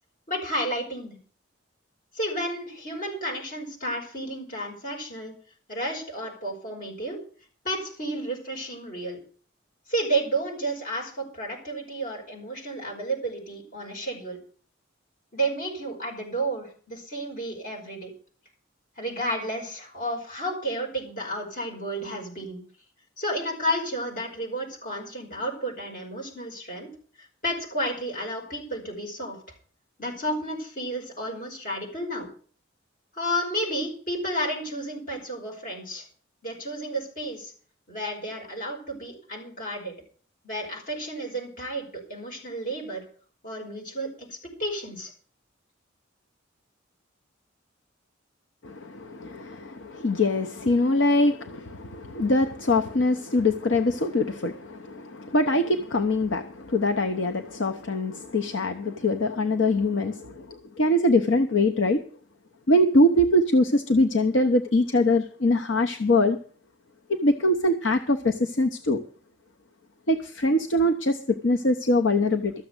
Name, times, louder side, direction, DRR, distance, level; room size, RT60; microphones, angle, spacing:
voice 1, 0.3-1.2 2.1-5.3 5.7-7.2 7.6-9.2 9.9-14.4 15.3-18.1 19.0-22.6 23.2-26.9 27.2-29.4 30.0-32.3 33.1-36.0 36.4-37.5 37.9-40.0 40.4-43.0 43.4-45.1, right 1 dB, 45° left, 1 dB, 5.1 m, -31 dB
voice 2, 48.6-62.0 62.7-66.4 67.1-69.0 70.1-72.5, left 1 dB, 70° left, 6 dB, 0.9 m, -23 dB
13.5 x 7.2 x 8.0 m, 0.43 s
head